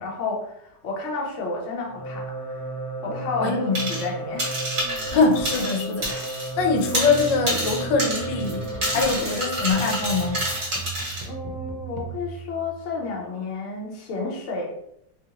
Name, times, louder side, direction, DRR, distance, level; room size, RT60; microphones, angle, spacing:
voice 1, 0.0-2.6 3.0-4.7 8.9-9.1 11.3-14.7, left 3 dB, 60° left, -1 dB, 0.8 m, -31 dB
sound 1, 1.8-10.6, right 2 dB, 35° left, 0.4 m, -33 dB
voice 2, 3.1-3.9 5.1-6.1 6.6-8.7 8.9-10.4, left 4 dB, 80° left, 3 dB, 1.2 m, -23 dB
sound 2, 3.7-4.1 4.4-6.5 6.8-11.2, right 1 dB, 40° right, 1.2 m, -28 dB
sound 3, 6.6-13.2, right 6 dB, 70° right, 1.1 m, -39 dB
3.1 x 2.4 x 2.8 m, 0.75 s
omnidirectional pair, 2.0 m